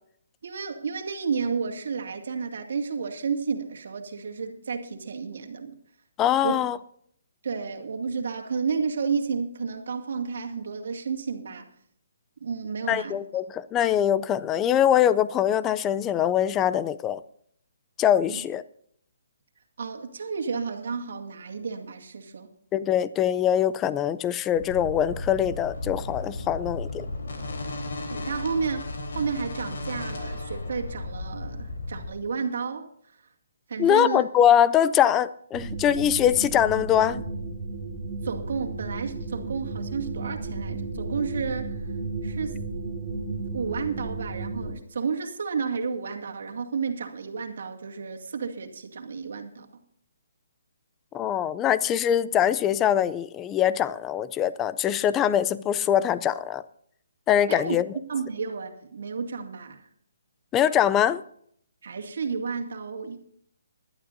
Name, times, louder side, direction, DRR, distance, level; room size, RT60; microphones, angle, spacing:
voice 1, 0.4-5.7 6.4-6.6 7.4-11.7 12.4-13.2 18.3-18.4 19.8-22.5 28.1-32.9 33.7-34.2 38.2-41.9 42.2-42.6 43.5-49.7 57.5-57.8 58.1-59.9 61.8-63.2, right 5 dB, 60° right, 2.2 m, -31 dB
voice 2, 6.2-6.8 12.9-17.2 18.0-18.6 22.7-27.1 33.8-37.2 51.1-56.6 57.3-57.8 60.5-61.2, left 10 dB, 15° left, 0.4 m, -23 dB
sound 1, 24.6-32.1, left 2 dB, 70° left, 3.6 m, -35 dB
sound 2, 35.5-44.7, right 3 dB, 30° right, 3.7 m, -33 dB
20.5 x 12.0 x 2.6 m
hypercardioid pair, 165°, 0 cm